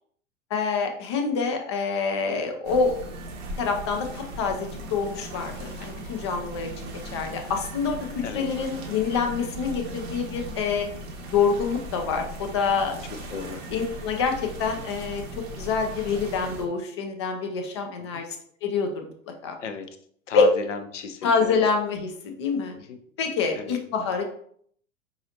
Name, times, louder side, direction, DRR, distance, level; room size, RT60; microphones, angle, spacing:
voice 1, 0.5-3.0 3.6-10.9 11.3-12.9 13.7-18.3 18.6-19.1 19.4-19.5 20.3-20.5 21.2-22.7 23.2-24.2, left 5 dB, 25° left, 5 dB, 0.3 m, -26 dB
sound 1, 2.6-16.6, right 1 dB, 25° right, 0.7 m, -38 dB
voice 2, 13.3-13.6 18.1-18.2 19.6-19.8 20.3-21.6 22.8-23.0 23.6-23.8, left 5 dB, 60° left, 8 dB, 0.7 m, -34 dB
4.7 x 2.6 x 2.8 m, 0.63 s
figure-of-eight pair, 100°, 41 cm